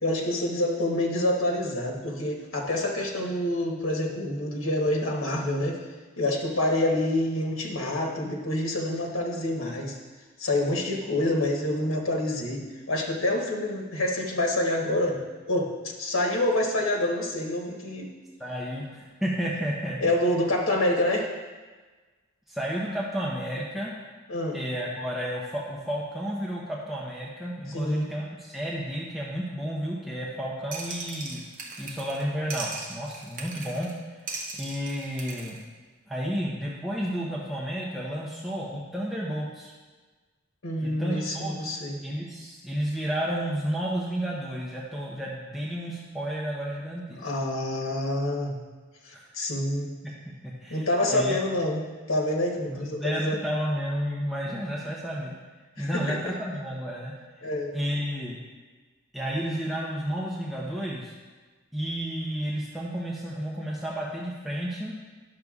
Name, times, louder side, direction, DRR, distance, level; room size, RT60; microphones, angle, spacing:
voice 1, 0.0-5.8 6.2-10.0 10.4-15.2 15.5-18.1 20.0-21.3 24.3-24.6 27.7-28.1 40.6-42.0 47.2-48.5 49.0-49.9 50.7-51.8 52.1-53.4 55.8-56.2 57.4-57.8, left 1 dB, 85° left, 0 dB, 1.1 m, -27 dB
voice 2, 18.4-20.0 22.5-23.9 24.5-31.4 31.8-33.9 34.2-35.6 36.1-39.7 40.8-41.8 42.0-47.2 49.1-49.3 50.0-50.1 50.6-51.4 52.4-55.3 55.8-57.1 57.7-58.4 59.1-61.1 61.7-64.9, equal, ahead, -6 dB, 0.8 m, -31 dB
sound 1, 30.7-32.2 32.5-33.9 34.3-35.6, right 3 dB, 40° right, 0.9 m, -38 dB
10.5 x 6.6 x 2.4 m, 1.3 s
head